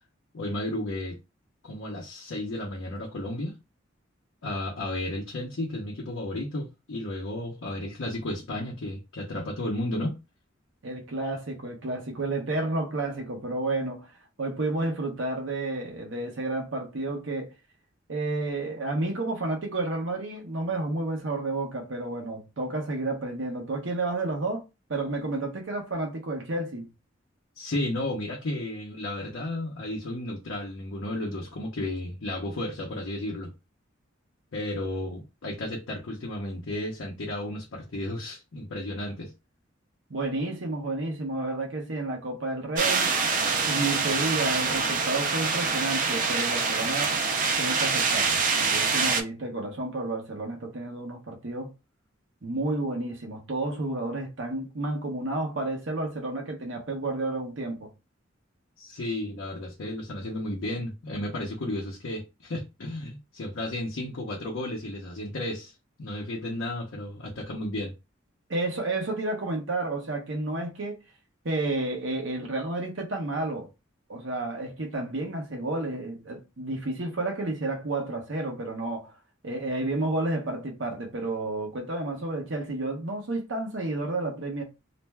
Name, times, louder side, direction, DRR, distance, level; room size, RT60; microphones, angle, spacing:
voice 1, 0.3-1.2 1.6-3.5 4.4-10.2 27.6-33.5 34.5-39.3 58.8-65.7 66.0-67.9, left 1 dB, 80° left, 0.6 m, -33 dB
voice 2, 10.8-14.1 14.4-17.5 18.1-24.6 24.9-26.9 40.1-43.1 43.6-47.3 47.6-51.7 52.4-57.9 68.5-71.0 71.4-73.7 74.1-79.1 79.4-84.6, right 2 dB, 70° right, 0.8 m, -31 dB
sound 1, 42.8-49.2, right 4 dB, 40° right, 0.4 m, -25 dB
2.5 x 2.2 x 3.2 m
head